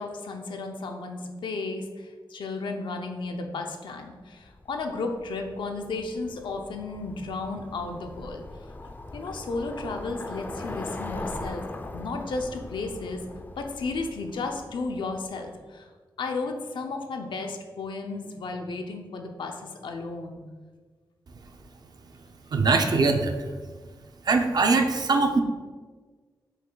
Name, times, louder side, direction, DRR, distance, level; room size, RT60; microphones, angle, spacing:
voice 1, 0.0-8.4 9.1-11.6 11.9-13.2 13.6-15.9 16.2-20.4, left 3 dB, 85° left, 4 dB, 0.5 m, -33 dB
Bicycle, 4.4-15.3, left 2 dB, 25° left, 0.3 m, -40 dB
voice 2, 22.5-23.5 24.2-25.4, right 3 dB, 55° right, 5 dB, 0.5 m, -22 dB
5.2 x 2.2 x 3.8 m, 1.4 s
wide cardioid pair, 95°, 8 cm